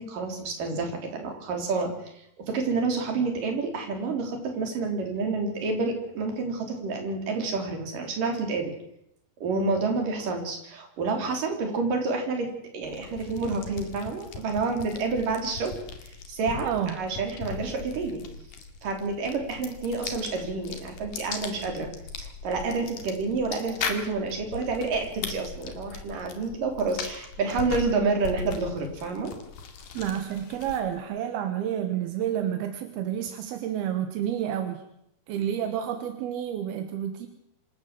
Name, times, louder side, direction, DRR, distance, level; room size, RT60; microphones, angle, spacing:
voice 1, 0.0-1.9 2.4-8.7 9.4-15.7 16.3-18.2 18.8-21.9 22.2-29.3, right 3 dB, 60° right, 3 dB, 5.2 m, -29 dB
sound 1, 12.8-31.0, left 5 dB, 60° left, 3.6 m, -39 dB
voice 2, 16.6-17.0 29.9-34.8 35.3-37.3, right 10 dB, 85° right, 7 dB, 3.3 m, -30 dB
26.5 x 13.5 x 7.6 m, 0.76 s
omnidirectional pair, 4.3 m